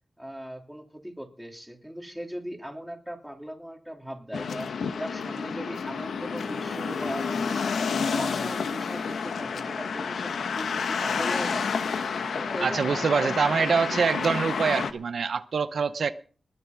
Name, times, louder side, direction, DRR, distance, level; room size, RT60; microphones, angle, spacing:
voice 1, 0.2-11.7 12.4-14.2, equal, 5° right, 3.1 m, -39 dB
sound 1, 4.3-14.9, left 5 dB, 85° left, 1.1 m, -30 dB
voice 2, 12.6-16.1, right 5 dB, 70° right, 0.6 m, -25 dB
20.5 x 7.0 x 6.0 m
cardioid pair, 65°, 0 cm